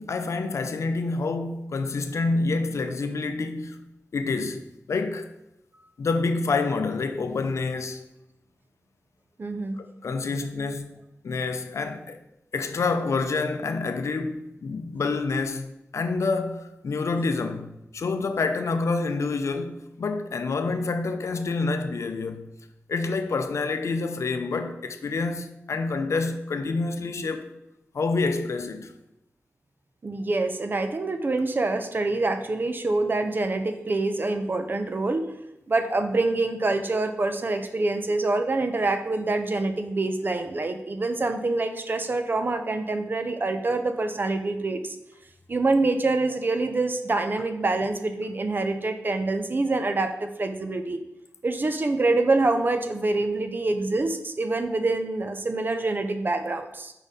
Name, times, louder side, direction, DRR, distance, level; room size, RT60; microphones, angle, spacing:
voice 1, 0.0-3.8 4.1-5.3 6.0-8.1 9.8-10.9 11.2-12.2 12.5-22.5 22.9-27.5 27.9-28.9, left 3 dB, 75° left, 0.5 m, -28 dB
voice 2, 9.4-9.8 30.0-35.3 35.7-45.0 45.5-51.0 51.4-56.9, right 2 dB, 40° right, 0.6 m, -26 dB
4.9 x 4.2 x 5.0 m
wide cardioid pair, 110°, 5 cm